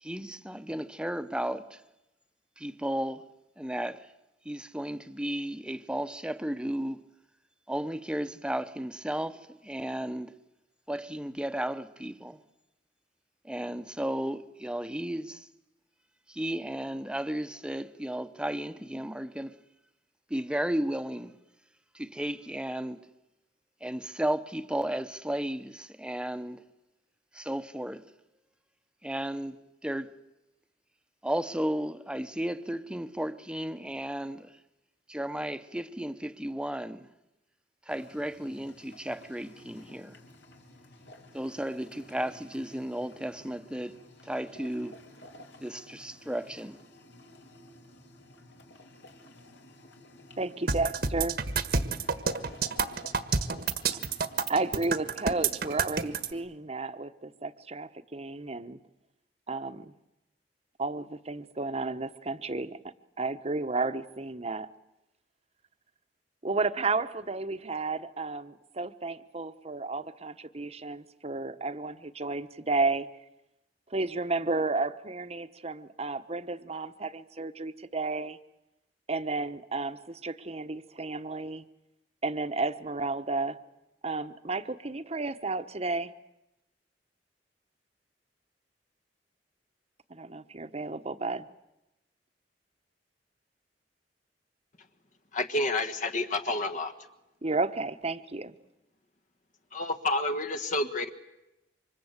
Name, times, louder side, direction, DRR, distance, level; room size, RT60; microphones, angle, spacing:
voice 1, 0.0-1.8 2.6-3.3 3.6-4.1 4.4-7.0 7.7-10.3 10.9-12.4 13.4-15.5 16.3-19.5 20.3-21.3 21.9-23.0 23.8-26.6 27.3-28.1 29.0-29.6 29.8-30.1 31.2-34.5 35.1-37.1 37.9-40.2 41.3-45.0 45.6-46.8, right 1 dB, 5° right, 1.1 m, -34 dB
sound 1, 37.9-56.4, left 1 dB, 70° left, 3.6 m, -53 dB
voice 2, 50.4-51.4 54.5-58.8 59.5-59.9 60.8-62.8 63.2-64.7 66.4-73.1 73.9-78.4 79.1-81.6 82.2-83.6 84.0-86.1 90.1-91.5 97.4-98.5, right 3 dB, 35° right, 1.1 m, -32 dB
sound 2, 50.7-56.3, right 5 dB, 60° right, 1.5 m, -29 dB
voice 3, 95.3-96.9 99.7-101.1, left 2 dB, 50° left, 1.5 m, -29 dB
28.0 x 25.5 x 8.2 m
head